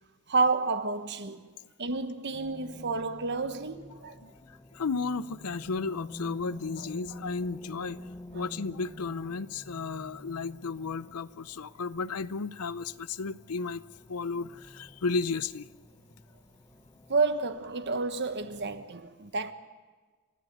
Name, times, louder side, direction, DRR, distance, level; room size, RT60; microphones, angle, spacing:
voice 1, 0.3-1.4 1.8-4.1 8.3-8.4 17.1-19.5, right 3 dB, 50° right, 1.3 m, -30 dB
sound 1, 2.3-18.9, left 1 dB, 15° left, 1.0 m, -49 dB
voice 2, 4.2-13.8 14.1-15.7, left 4 dB, 80° left, 0.7 m, -34 dB
29.5 x 13.5 x 8.0 m
head